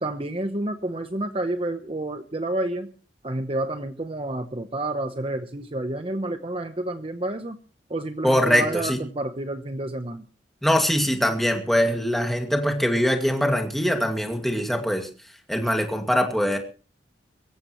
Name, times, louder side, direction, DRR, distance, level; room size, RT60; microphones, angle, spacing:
voice 1, 0.0-2.9 3.2-7.6 7.9-10.2, right 1 dB, 30° right, 8 dB, 0.9 m, -29 dB
voice 2, 8.2-9.0 10.6-15.1 15.5-16.6, equal, ahead, 3 dB, 2.2 m, -22 dB
23.5 x 15.0 x 3.1 m, 0.38 s
head